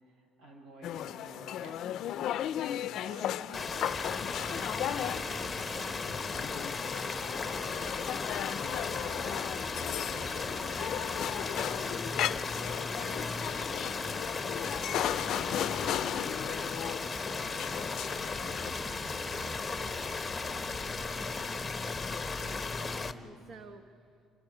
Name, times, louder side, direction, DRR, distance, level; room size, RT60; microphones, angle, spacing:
voice 1, 0.1-3.3 3.6-3.7 4.2-8.3 8.5-9.1 10.0-11.1 11.6-13.9 14.5-20.1 20.3-21.6, right 2 dB, 75° right, -1 dB, 8.0 m, -53 dB
sound 1, 0.8-18.7, left 11 dB, 65° left, 0.5 m, -36 dB
voice 2, 3.3-3.8 19.7-20.2 22.4-24.3, right 3 dB, 55° right, 6 dB, 1.2 m, -54 dB
sound 2, 3.5-23.1, left 4 dB, 20° left, 0.9 m, -36 dB
sound 3, 3.9-23.1, equal, 25° right, 4.2 m, -47 dB
28.0 x 26.0 x 5.0 m, 2.5 s
cardioid pair, 135°, 0 cm